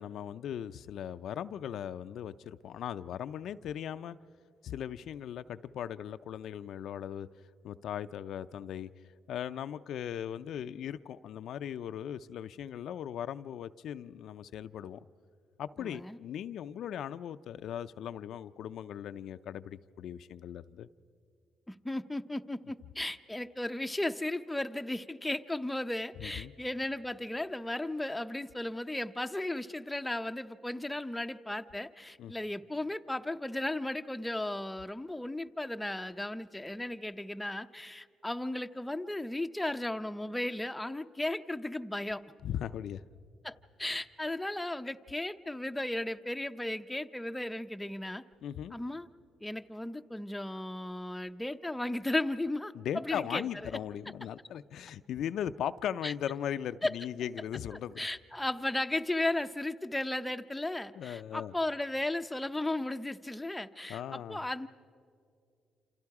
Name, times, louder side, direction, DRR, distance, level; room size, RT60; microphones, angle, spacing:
voice 1, 0.0-4.2 4.6-7.3 7.6-8.9 9.3-15.0 15.6-20.9 26.2-26.5 32.2-32.3 42.4-43.0 48.4-48.7 52.7-58.0 61.0-61.5 63.9-64.4, left 9 dB, 75° left, 0.5 m, -38 dB
voice 2, 15.8-16.2 21.7-42.2 43.4-48.2 48.7-49.1 49.4-53.7 56.0-56.1 56.8-56.9 58.0-64.7, left 1 dB, 10° left, 0.6 m, -35 dB
28.0 x 27.5 x 4.8 m
cardioid pair, 90°, 0 cm